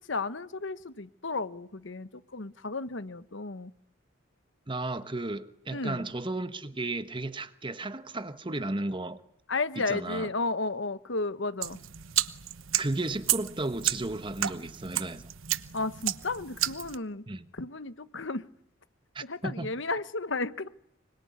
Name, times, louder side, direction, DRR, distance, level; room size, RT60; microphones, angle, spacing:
voice 1, 0.1-3.7 5.7-6.0 9.5-11.8 15.7-17.2 17.5-18.4 19.2-20.7, left 3 dB, 60° left, 1.2 m, -33 dB
voice 2, 4.7-9.2 9.9-10.3 12.8-15.3 17.3-17.5 19.1-19.7, right 2 dB, 25° right, 1.2 m, -34 dB
sound 1, 11.6-17.0, right 13 dB, 75° right, 1.0 m, -32 dB
25.5 x 24.0 x 9.6 m
head